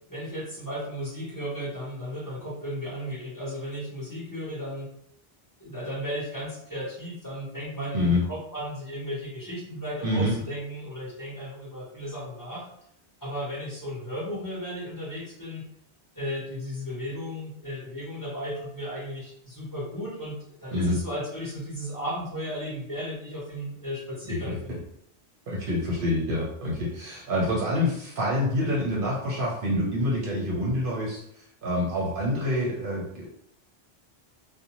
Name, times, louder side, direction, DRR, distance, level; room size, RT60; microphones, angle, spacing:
voice 1, 0.1-4.9 5.6-12.7 13.2-15.6 16.1-24.7, equal, 20° left, -8 dB, 1.0 m, -35 dB
voice 2, 10.0-10.3 20.7-21.0 24.5-24.6 25.5-31.2 31.6-33.3, left 1 dB, 60° right, -3 dB, 0.8 m, -26 dB
2.6 x 2.1 x 2.9 m, 0.72 s
omnidirectional pair, 1.1 m